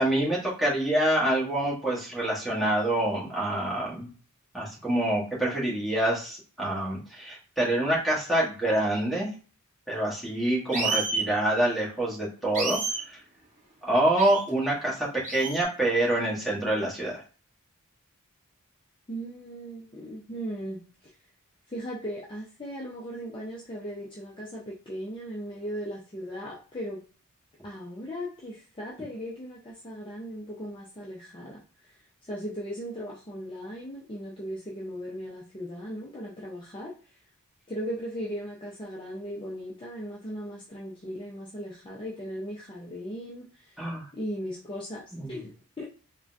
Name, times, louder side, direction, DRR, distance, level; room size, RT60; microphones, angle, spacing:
voice 1, 0.0-4.1 4.5-9.3 9.9-12.8 13.8-17.1 43.8-44.0 45.1-45.3, right 1 dB, ahead, -7 dB, 1.1 m, -26 dB
sound 1, 10.7-11.3 12.5-13.0 14.2-14.4 15.2-15.6, right 4 dB, 35° right, 1.1 m, -29 dB
voice 2, 19.1-20.8 21.7-27.0 27.6-36.9 37.7-43.8 44.1-45.8, equal, 25° left, -5 dB, 0.5 m, -37 dB
3.7 x 2.2 x 2.5 m, 0.38 s
head